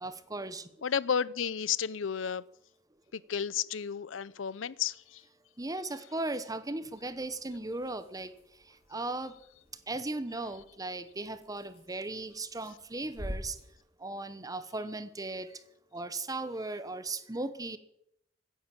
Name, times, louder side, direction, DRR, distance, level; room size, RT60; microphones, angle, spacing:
voice 1, 0.0-0.7 5.6-8.3 8.7-9.3 9.9-13.6 14.0-15.5 15.9-17.8, right 2 dB, 20° right, 1.1 m, -37 dB
voice 2, 0.8-2.4 3.1-5.2, left 7 dB, 85° left, 0.6 m, -32 dB
sound 1, 6.9-13.8, equal, 30° left, 4.3 m, -48 dB
15.5 x 10.0 x 8.7 m
head